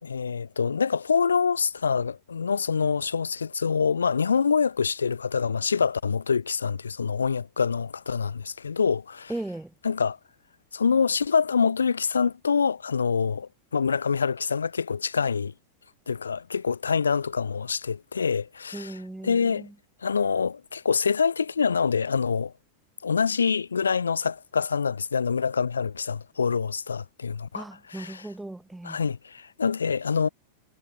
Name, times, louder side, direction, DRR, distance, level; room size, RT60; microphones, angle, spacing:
voice 1, 0.0-9.3 9.8-10.2 10.7-15.5 16.1-19.0 19.2-19.7 20.0-22.5 23.0-28.3 28.8-30.3, left 6 dB, 75° left, 3.8 m, -25 dB
voice 2, 9.3-9.7 18.7-19.7 27.5-29.0, right 2 dB, 5° right, 2.8 m, -37 dB
figure-of-eight pair, 90°, 0 cm